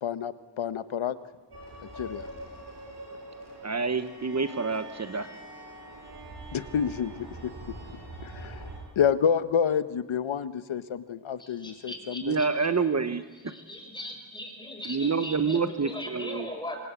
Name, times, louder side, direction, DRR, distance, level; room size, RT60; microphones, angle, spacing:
voice 1, 0.0-1.2 1.9-2.2 6.5-7.1 7.4-7.7 8.2-8.6 9.0-12.4, left 7 dB, 80° left, 13 dB, 1.3 m, -28 dB
sound 1, 1.5-8.8, right 1 dB, 60° right, 7.9 m, -43 dB
voice 2, 3.6-5.3 12.2-13.2 14.8-16.5, right 5 dB, 35° right, 10 dB, 1.1 m, -27 dB
voice 3, 11.4-12.5 13.5-16.8, left 1 dB, 10° left, 4 dB, 5.4 m, -39 dB
26.5 x 23.0 x 8.4 m, 1.3 s
wide cardioid pair, 105°, 46 cm